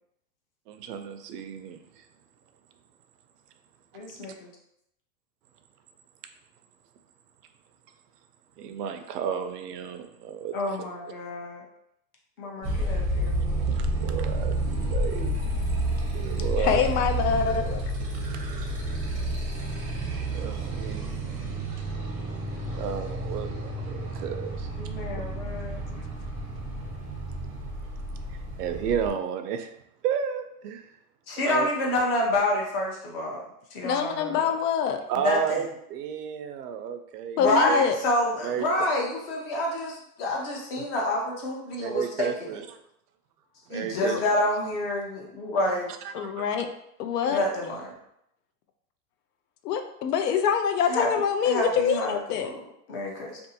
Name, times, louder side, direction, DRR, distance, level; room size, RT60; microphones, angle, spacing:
voice 1, 0.7-2.0 8.6-10.8 13.6-15.3 15.8-16.8 18.2-18.7 20.3-21.2 22.6-24.7 28.3-29.7 30.0-30.9 31.4-31.7 35.1-37.4 37.7-37.8 38.4-38.7 40.8-40.9 41.8-42.7 43.7-44.2 46.0-46.6 47.2-47.4, right 8 dB, 75° right, 7 dB, 0.6 m, -33 dB
voice 2, 3.9-4.5 10.5-11.6 12.4-13.7 24.8-26.0 31.3-33.4 33.7-34.5 35.2-35.6 37.4-42.6 43.7-45.9 47.3-47.9 50.9-51.1 51.4-53.4, left 1 dB, 40° left, -1 dB, 0.5 m, -28 dB
Motorcycle, 12.6-29.1, right 1 dB, 20° right, 0.5 m, -30 dB
voice 3, 16.6-17.8 33.8-35.0 37.4-38.0 43.9-44.2 46.1-46.7 47.0-47.5 49.6-52.5, left 7 dB, 85° left, 7 dB, 0.5 m, -25 dB
2.6 x 2.4 x 2.7 m, 0.77 s
supercardioid pair, 155°, 47 cm